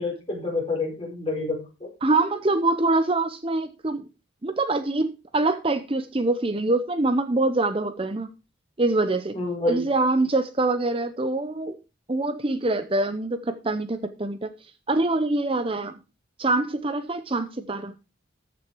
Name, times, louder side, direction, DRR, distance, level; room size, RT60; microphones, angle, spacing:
voice 1, 0.0-1.9 9.3-9.8, left 2 dB, 25° left, -1 dB, 5.2 m, -28 dB
voice 2, 2.0-4.1 4.4-8.3 8.8-9.4 9.7-11.8 12.1-14.5 14.9-16.0 16.4-17.9, right 2 dB, 25° right, 11 dB, 0.7 m, -24 dB
14.0 x 6.3 x 4.7 m, 0.29 s
head